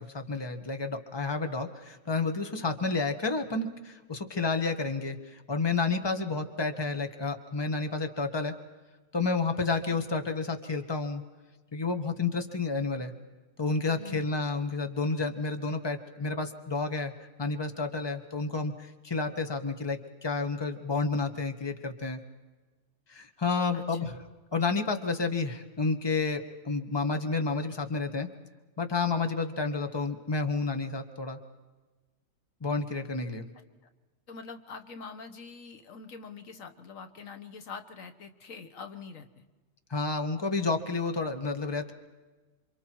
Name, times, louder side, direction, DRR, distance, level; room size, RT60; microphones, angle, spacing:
voice 1, 0.0-8.5 9.1-11.2 11.7-13.1 13.6-17.1 17.4-22.2 23.1-24.1 24.5-28.3 28.8-31.4 32.6-33.5 39.9-41.9, left 4 dB, 20° left, 6 dB, 1.4 m, -30 dB
voice 2, 13.9-14.3 23.7-24.1 34.3-39.5, left 5 dB, 80° left, 8 dB, 1.6 m, -45 dB
28.0 x 26.0 x 4.6 m, 1.2 s
omnidirectional pair, 1.4 m